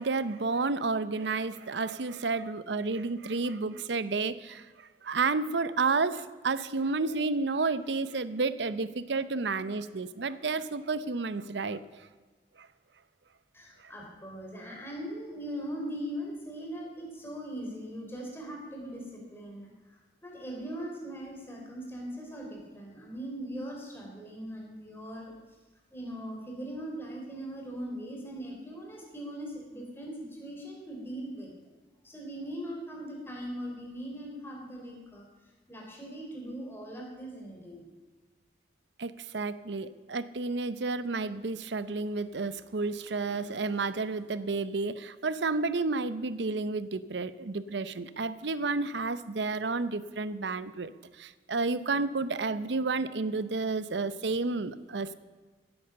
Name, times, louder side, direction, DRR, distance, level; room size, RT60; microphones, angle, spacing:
voice 1, 0.0-12.1 12.6-12.7 39.0-50.9 51.2-55.1, right 3 dB, 75° right, 15 dB, 0.7 m, -31 dB
voice 2, 13.5-25.3 25.9-31.5 32.0-35.2 35.7-37.8, equal, 15° left, -1 dB, 3.4 m, -40 dB
16.0 x 9.9 x 6.8 m, 1.3 s
head